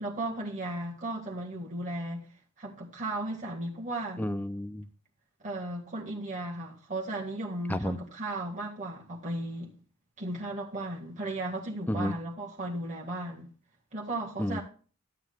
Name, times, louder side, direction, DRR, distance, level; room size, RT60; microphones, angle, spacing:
voice 1, 0.0-2.3 2.6-4.2 5.4-9.7 10.2-13.5 13.9-14.6, right 1 dB, 40° right, 1.9 m, -35 dB
voice 2, 4.2-4.9 7.7-8.0 11.9-12.1 14.4-14.6, left 1 dB, 10° left, 0.4 m, -31 dB
13.0 x 8.9 x 2.3 m
head